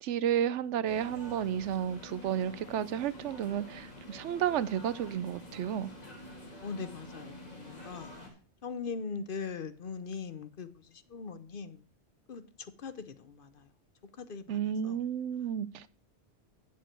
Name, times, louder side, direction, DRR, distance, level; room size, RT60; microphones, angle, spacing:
voice 1, 0.0-5.9 14.5-15.8, right 9 dB, 85° right, 0.9 m, -32 dB
sound 1, 0.8-8.3, left 1 dB, 35° left, 2.5 m, -48 dB
voice 2, 6.6-8.1 8.6-11.8 12.3-13.7 14.2-15.0, left 5 dB, 55° left, 0.9 m, -41 dB
9.2 x 7.5 x 4.4 m
omnidirectional pair, 1.2 m